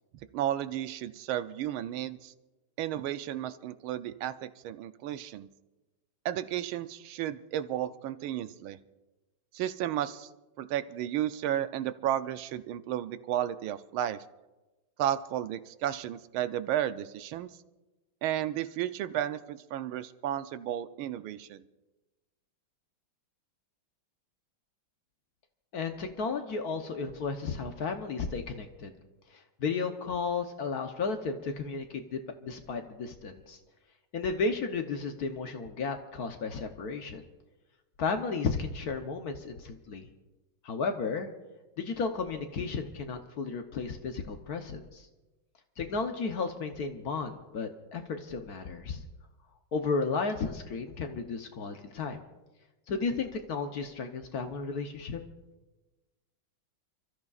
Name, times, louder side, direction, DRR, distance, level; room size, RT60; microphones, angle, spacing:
voice 1, 0.3-2.3 2.8-5.5 6.2-8.8 9.5-10.3 10.6-14.2 15.0-17.5 18.2-21.6, right 11 dB, 85° right, 11 dB, 1.5 m, -33 dB
voice 2, 25.7-29.0 29.6-33.6 34.1-37.2 38.0-40.1 40.6-41.3 41.8-45.1 45.8-49.0 49.7-52.2 52.9-55.2, left 4 dB, 60° left, 6 dB, 1.2 m, -33 dB
29.5 x 13.5 x 2.4 m, 1.1 s
omnidirectional pair, 2.2 m